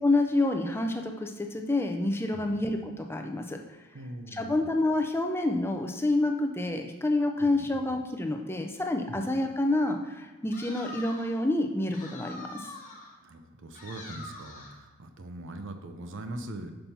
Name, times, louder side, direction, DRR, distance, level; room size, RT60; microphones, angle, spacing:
voice 1, 0.0-3.6 4.3-12.7, left 2 dB, 10° left, 4 dB, 0.5 m, -28 dB
voice 2, 2.3-2.6 3.9-4.7 7.4-7.7 9.1-9.2 12.8-13.0 13.2-16.7, right 1 dB, 55° right, 7 dB, 0.6 m, -42 dB
sound 1, 10.5-11.4 11.9-13.2 13.7-14.8, left 2 dB, 35° left, 1.0 m, -44 dB
5.7 x 5.4 x 4.2 m, 1.2 s
head